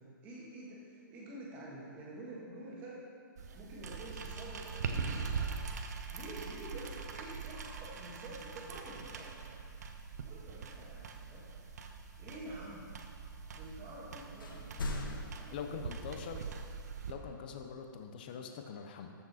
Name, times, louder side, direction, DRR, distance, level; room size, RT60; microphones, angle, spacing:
voice 1, 0.0-3.0 3.5-5.6 6.1-9.6 10.2-11.5 12.2-12.9 13.5-15.8, right 1 dB, 15° right, -5 dB, 1.5 m, -48 dB
sound 1, 3.4-17.1, right 5 dB, 50° right, 0.8 m, -42 dB
sound 2, 10.8-11.9 12.8-13.6 13.9-14.0 14.3-16.2, left 2 dB, 75° left, 1.1 m, -43 dB
voice 2, 15.5-16.4 17.1-19.1, left 6 dB, 25° left, 5 dB, 0.5 m, -43 dB
13.5 x 6.1 x 4.1 m, 2.3 s
hypercardioid pair, 175°, 11 cm